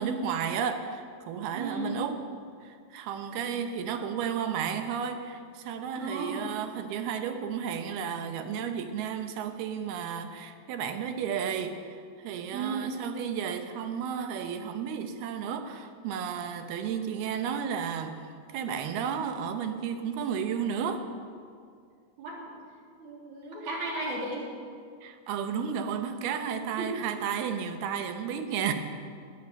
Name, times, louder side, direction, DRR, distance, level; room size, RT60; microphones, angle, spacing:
voice 1, 0.0-2.2 2.6-18.2 18.5-21.1 25.0-28.7, right 7 dB, 75° right, 7 dB, 2.7 m, -33 dB
voice 2, 1.5-2.0 6.0-6.4 12.5-13.0 22.2-22.6 23.0-24.5 26.8-26.9, right 2 dB, 45° right, -3 dB, 4.2 m, -35 dB
19.5 x 8.6 x 8.0 m, 2.2 s
omnidirectional pair, 4.9 m